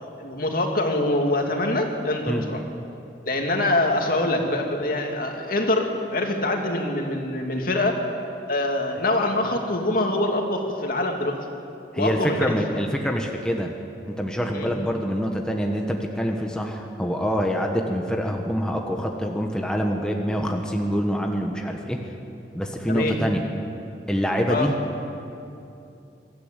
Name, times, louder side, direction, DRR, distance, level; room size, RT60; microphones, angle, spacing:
voice 1, 0.0-2.6 3.3-8.0 8.5-11.4 12.0-12.6 14.5-14.7 22.9-23.2 24.5-24.7, left 1 dB, 55° left, 2 dB, 2.5 m, -24 dB
voice 2, 11.9-13.7 14.1-22.0 22.5-23.4 24.1-24.7, equal, 5° left, 1 dB, 1.3 m, -25 dB
23.0 x 14.0 x 9.0 m, 2.7 s
head